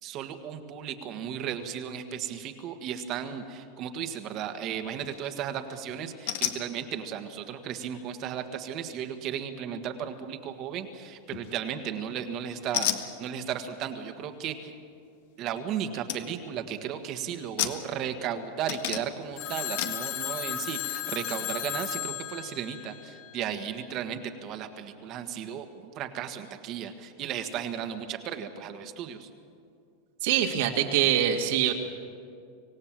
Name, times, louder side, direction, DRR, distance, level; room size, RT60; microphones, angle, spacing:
voice 1, 0.0-14.7 15.4-29.3, right 8 dB, 35° right, 7 dB, 1.5 m, -35 dB
sound 1, 5.0-5.3 6.3-6.6 11.3-11.7 12.7-13.1 15.6-15.7 16.1-16.2 16.6-16.9 17.6-18.3 18.7-19.3 19.8-20.0, left 11 dB, 65° left, 1.6 m, -32 dB
Telephone, 19.4-23.6, left 12 dB, 45° left, 1.2 m, -35 dB
voice 2, 30.2-31.7, right 10 dB, 65° right, 2 dB, 2.0 m, -24 dB
25.5 x 17.0 x 7.6 m, 2.4 s
supercardioid pair, 155°, 0 cm